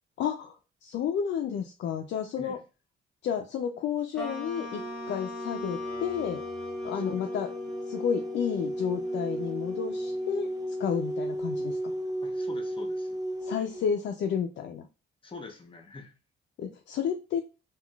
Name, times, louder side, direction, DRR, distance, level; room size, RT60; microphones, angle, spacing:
voice 1, 0.2-2.6 3.2-4.8 5.1-6.4 6.8-7.5 7.9-10.5 10.8-11.8 13.4-14.9 16.6-17.4, left 7 dB, 65° left, 4 dB, 0.4 m, -31 dB
sound 1, 4.2-10.8, left 1 dB, 5° left, 1.1 m, -42 dB
sound 2, 4.7-13.8, equal, 20° right, 0.6 m, -34 dB
voice 2, 12.2-13.2 15.2-16.1, left 4 dB, 25° left, 4 dB, 0.8 m, -45 dB
3.6 x 2.3 x 2.3 m, 0.29 s
cardioid pair, 90°, 20 cm